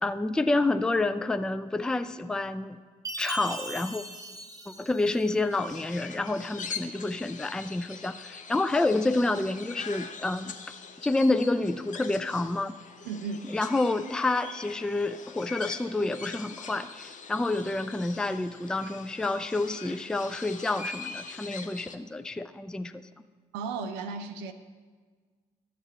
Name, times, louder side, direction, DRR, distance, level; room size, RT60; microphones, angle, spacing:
voice 1, 0.0-2.8 3.2-4.0 4.7-10.5 11.0-12.7 13.5-23.1, left 2 dB, 5° left, 11 dB, 0.4 m, -28 dB
Chime, 3.0-5.5, right 1 dB, 15° right, 1.0 m, -39 dB
sound 1, 5.5-22.0, left 5 dB, 40° left, 0.8 m, -43 dB
voice 2, 13.0-13.5 23.5-24.5, right 5 dB, 65° right, 7 dB, 0.6 m, -35 dB
13.5 x 7.2 x 3.5 m, 1.5 s
figure-of-eight pair, 45°, 20 cm